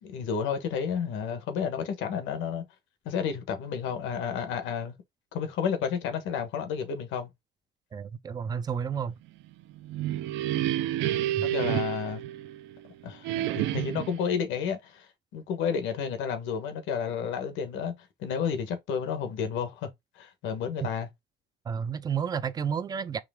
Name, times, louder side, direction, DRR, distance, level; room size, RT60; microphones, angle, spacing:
voice 1, 0.0-2.6 3.0-4.9 5.3-7.3 10.4-10.5 11.4-12.2 13.0-17.9 18.2-19.9 20.2-21.1, left 7 dB, 90° left, 1.3 m, -31 dB
voice 2, 7.9-9.2 11.3-11.5 20.8-20.9 21.7-23.2, right 7 dB, 20° right, 0.4 m, -31 dB
sound 1, 9.7-12.8 13.2-14.2, right 13 dB, 75° right, 0.5 m, -29 dB
4.8 x 3.1 x 3.6 m
cardioid pair, 180°, 19 cm